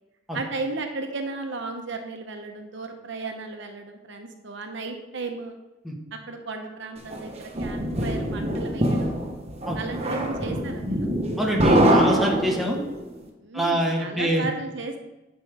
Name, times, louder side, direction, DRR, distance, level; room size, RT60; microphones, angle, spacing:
voice 1, 0.3-5.6 6.3-9.2 9.7-11.1 13.4-15.0, right 3 dB, 65° right, 4 dB, 0.9 m, -34 dB
sound 1, 7.1-13.0, right 1 dB, 35° right, 1.1 m, -23 dB
voice 2, 11.4-12.8 13.5-14.5, equal, ahead, -2 dB, 1.2 m, -25 dB
9.4 x 5.3 x 3.5 m, 1.0 s
head